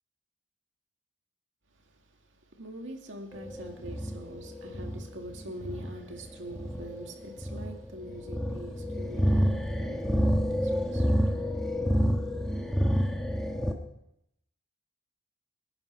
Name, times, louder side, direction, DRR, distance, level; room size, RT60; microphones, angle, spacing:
voice 1, 2.5-11.8, right 1 dB, 70° right, 2.2 m, -44 dB
sound 1, 3.3-13.7, equal, 5° left, 1.2 m, -29 dB
25.0 x 10.5 x 4.5 m
head